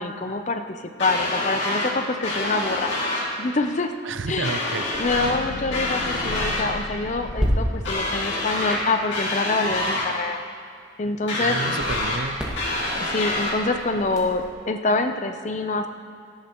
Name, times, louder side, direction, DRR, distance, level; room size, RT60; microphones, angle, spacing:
voice 1, 0.0-2.9 3.4-3.9 4.3-4.6 5.0-10.4 11.0-11.6 13.0-15.9, left 3 dB, 35° left, 7 dB, 0.6 m, -26 dB
sound 1, 1.0-1.9 2.2-3.3 4.4-5.4 5.7-6.7 7.8-8.8 9.1-10.1 11.3-12.2 12.6-13.5, left 2 dB, 65° left, 2.5 m, -26 dB
voice 2, 4.0-5.0 11.4-12.5, right 4 dB, 70° right, 11 dB, 0.5 m, -31 dB
sound 2, 4.9-8.2, left 2 dB, 80° left, 0.7 m, -36 dB
sound 3, 6.0-6.3 7.3-7.5 8.6-8.9 11.7-14.5, equal, 5° right, 1.8 m, -33 dB
18.0 x 13.5 x 3.0 m, 2.3 s
head